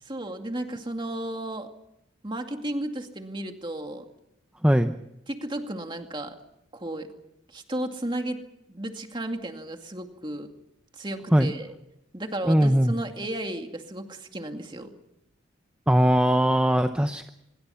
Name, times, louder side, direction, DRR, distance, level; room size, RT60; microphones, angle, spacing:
voice 1, 0.0-1.7 2.2-4.0 5.3-6.4 6.7-7.1 7.5-8.4 8.7-10.5 10.9-11.7 12.1-15.0, right 1 dB, 25° right, 5 dB, 2.3 m, -33 dB
voice 2, 4.6-4.9 11.3-11.5 12.4-13.0 15.9-17.3, equal, 5° right, 7 dB, 0.8 m, -20 dB
25.0 x 22.0 x 5.8 m, 0.85 s
head